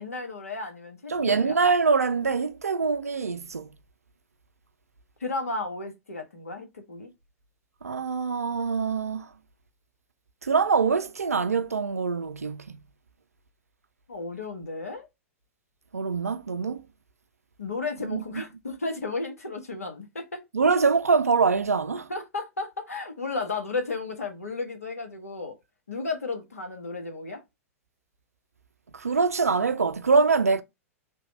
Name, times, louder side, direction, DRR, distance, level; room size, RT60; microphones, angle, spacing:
voice 1, 0.0-1.6 5.2-7.1 14.1-15.1 17.6-20.4 22.1-25.6 25.9-27.4, left 3 dB, 80° left, 1.3 m, -33 dB
voice 2, 1.1-3.7 7.8-9.3 10.4-12.8 15.9-16.8 18.0-18.4 20.5-22.1 28.9-30.6, right 4 dB, 85° right, 0.4 m, -24 dB
3.4 x 3.1 x 4.8 m
figure-of-eight pair, 100°, 8 cm